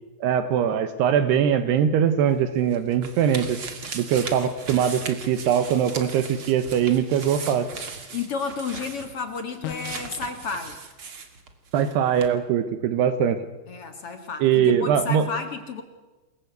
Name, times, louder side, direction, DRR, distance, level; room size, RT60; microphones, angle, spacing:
voice 1, 0.2-3.6 3.9-7.7 11.7-13.4 14.4-15.2, right 8 dB, 80° right, 10 dB, 3.1 m, -22 dB
sound 1, 2.3-11.9 12.2-12.3, right 5 dB, 40° right, 2.6 m, -38 dB
voice 2, 8.1-10.8 13.7-15.8, left 5 dB, 45° left, 6 dB, 2.2 m, -32 dB
sound 2, 9.6-10.2, left 12 dB, 85° left, 3.4 m, -35 dB
29.0 x 21.0 x 8.1 m, 1.2 s
omnidirectional pair, 4.8 m